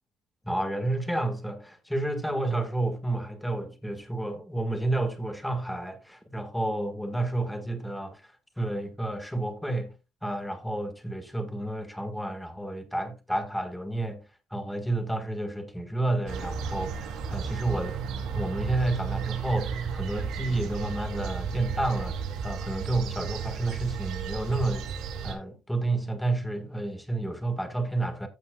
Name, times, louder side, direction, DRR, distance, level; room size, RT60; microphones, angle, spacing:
voice 1, 0.4-9.9 10.2-18.0 18.3-24.9 25.2-28.3, right 2 dB, ahead, 1.7 m, -30 dB
sound 1, 16.3-25.3, right 6 dB, 55° right, 3.2 m, -33 dB
15.0 x 7.5 x 2.3 m
cardioid pair, 180°, 0 cm